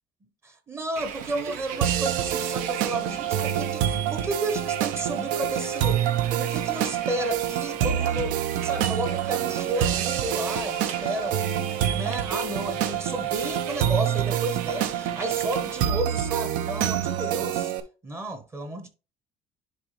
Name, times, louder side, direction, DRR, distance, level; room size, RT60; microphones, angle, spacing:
voice 1, 0.4-6.0 6.4-11.5 11.8-17.7 18.0-18.9, right 1 dB, 20° right, 0.9 m, -32 dB
Bus, 1.0-15.9, right 8 dB, 85° right, 1.1 m, -40 dB
sound 1, 1.8-17.8, right 10 dB, 70° right, 0.9 m, -27 dB
10.5 x 3.6 x 3.1 m
cardioid pair, 175°, 14 cm